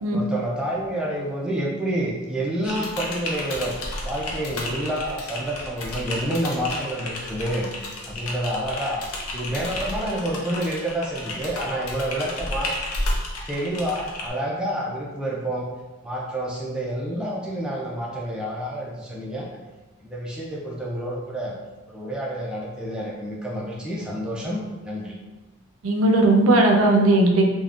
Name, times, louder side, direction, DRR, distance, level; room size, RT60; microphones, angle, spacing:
voice 1, 0.1-3.7 4.0-7.7 8.1-9.0 9.3-12.8 13.5-15.7 16.0-19.5 20.0-21.5 21.9-25.2, right 1 dB, 5° right, -4 dB, 0.3 m, -28 dB
Typing, 2.6-14.3, left 1 dB, 85° left, 0.5 m, -32 dB
voice 2, 25.8-27.5, right 2 dB, 75° right, 2 dB, 0.4 m, -17 dB
3.4 x 2.1 x 2.4 m, 1.1 s
head